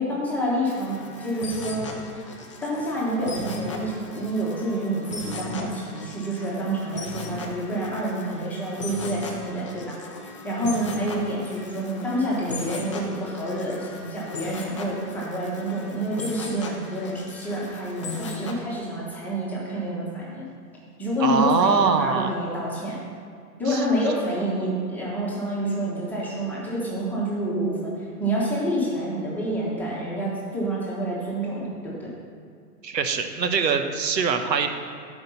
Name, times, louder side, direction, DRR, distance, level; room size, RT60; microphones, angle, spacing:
voice 1, 0.0-2.3 2.6-10.0 10.4-20.4 21.0-23.0 23.6-32.1, right 1 dB, 5° left, -7 dB, 1.3 m, -28 dB
sound 1, 0.6-18.5, left 3 dB, 20° left, 0.5 m, -37 dB
voice 2, 21.2-22.3 23.7-23.8 32.8-34.7, right 5 dB, 85° right, 6 dB, 1.2 m, -23 dB
13.5 x 5.3 x 5.7 m, 2.2 s
hypercardioid pair, 160°, 49 cm